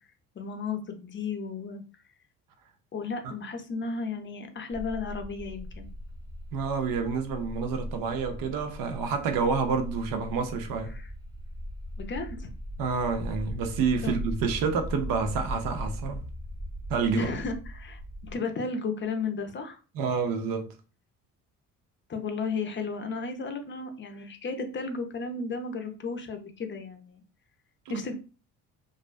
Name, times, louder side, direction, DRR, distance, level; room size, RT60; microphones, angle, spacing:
voice 1, 0.4-1.8 2.9-5.9 10.9-11.1 12.0-12.5 14.0-14.1 17.1-19.8 22.1-27.2 27.9-28.1, left 4 dB, 35° left, 0.5 m, -34 dB
sound 1, 4.7-18.4, equal, 10° right, 0.7 m, -39 dB
voice 2, 6.5-10.9 12.8-16.2 16.9-17.3 19.9-20.7 27.9-28.1, right 5 dB, 70° right, 0.6 m, -28 dB
2.4 x 2.1 x 2.4 m
supercardioid pair, 70°, 35 cm